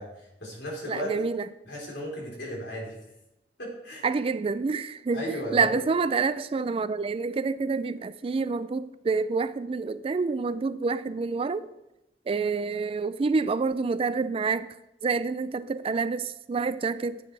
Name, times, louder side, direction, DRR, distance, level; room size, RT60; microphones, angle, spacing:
voice 1, 0.0-1.1 1.6-3.0 3.6-4.1 5.1-5.8, equal, 85° left, 3.8 m, -35 dB
voice 2, 0.9-1.5 4.0-11.7 12.3-14.7 15.0-17.2, right 4 dB, 35° right, 0.3 m, -27 dB
13.5 x 8.6 x 3.3 m
head